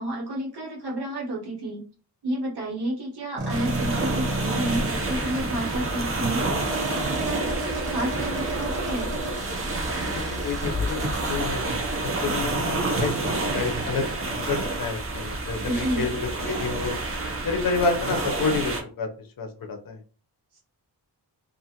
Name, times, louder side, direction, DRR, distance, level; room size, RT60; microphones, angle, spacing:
voice 1, 0.0-1.8 2.2-6.4 6.7-9.1 15.7-16.1, right 1 dB, 70° right, -1 dB, 1.2 m, -30 dB
sound 1, 3.4-11.4, right 1 dB, 50° right, 1.0 m, -32 dB
sound 2, 3.5-18.8, right 2 dB, 35° right, 0.6 m, -29 dB
voice 2, 10.1-17.0 17.4-20.0, left 4 dB, 55° left, 5 dB, 0.7 m, -29 dB
2.5 x 2.4 x 2.8 m, 0.38 s
wide cardioid pair, 130°, 40 cm